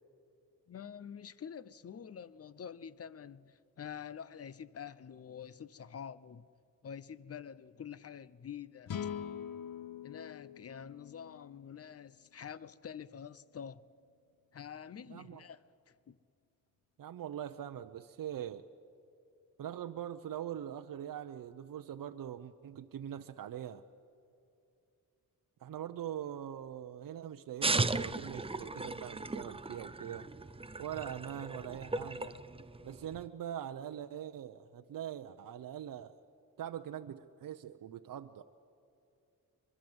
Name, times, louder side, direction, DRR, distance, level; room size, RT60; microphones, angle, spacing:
voice 1, 0.7-6.4 6.8-9.1 10.0-13.8 14.5-15.6 15.9-16.2, left 8 dB, 45° left, 0.8 m, -47 dB
sound 1, 8.9-12.2, left 8 dB, 75° left, 1.1 m, -43 dB
voice 2, 15.1-15.4 17.0-18.6 19.6-23.8 25.6-30.3 30.8-32.4 32.8-36.1 36.6-38.4, right 10 dB, 70° right, 0.8 m, -42 dB
Running Water various pressure, 27.6-33.2, right 3 dB, 15° right, 0.7 m, -36 dB
24.0 x 22.5 x 7.9 m
cardioid pair, 95°, 34 cm